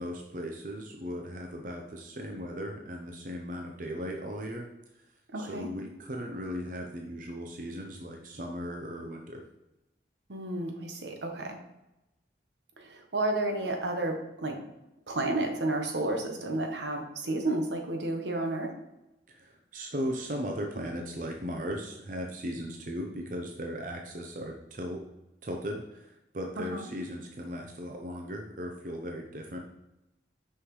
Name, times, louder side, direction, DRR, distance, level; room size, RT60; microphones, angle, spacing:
voice 1, 0.0-4.7 5.4-9.4 19.3-25.0 25.4-29.6, equal, 45° right, 1 dB, 0.6 m, -37 dB
voice 2, 5.3-5.7 10.3-11.6 12.8-14.6 15.1-18.7 26.6-26.9, right 2 dB, 80° right, 3 dB, 1.0 m, -31 dB
6.4 x 5.6 x 3.1 m, 0.92 s
head